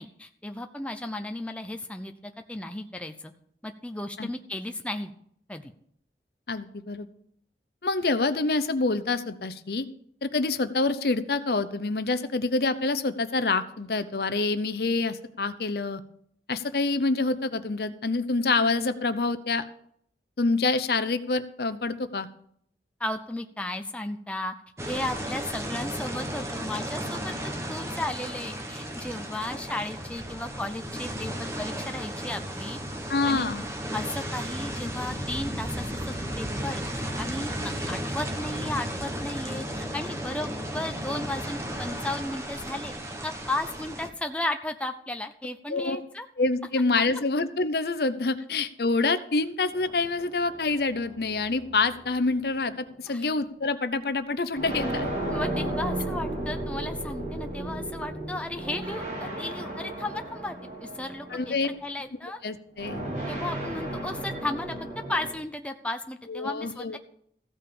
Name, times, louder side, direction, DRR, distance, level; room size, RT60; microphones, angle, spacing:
voice 1, 0.0-3.3 3.6-5.1 5.5-5.7 23.0-24.5 24.9-27.3 27.7-32.8 33.3-33.5 33.9-42.9 43.2-46.3 53.1-53.2 55.3-62.4 63.3-67.0, left 1 dB, 5° left, 6 dB, 0.6 m, -34 dB
voice 2, 6.5-7.1 7.8-9.9 10.2-16.0 16.5-19.6 20.4-22.3 33.1-33.6 45.7-46.0 46.4-55.1 61.3-61.7 62.4-63.0 66.3-67.0, left 3 dB, 60° left, 12 dB, 0.7 m, -26 dB
sound 1, 24.8-44.1, equal, 15° right, 1.1 m, -34 dB
sound 2, 49.7-52.4 53.3-53.4 54.6-61.9 62.8-65.3, right 1 dB, 40° right, 3.4 m, -34 dB
15.0 x 5.5 x 6.8 m, 0.66 s
head